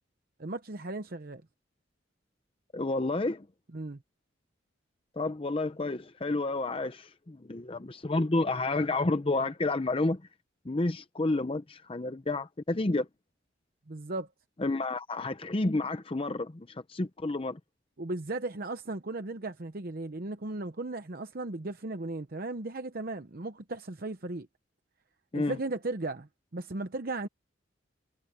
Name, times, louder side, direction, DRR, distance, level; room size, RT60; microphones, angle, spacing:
voice 1, 0.4-1.4 3.7-4.0 13.9-14.3 18.0-24.5 25.3-27.3, right 2 dB, 50° right, 0.9 m, -36 dB
voice 2, 2.7-3.5 5.2-10.2 10.6-13.1 14.6-17.6 25.3-25.6, left 2 dB, 30° left, 0.7 m, -30 dB
head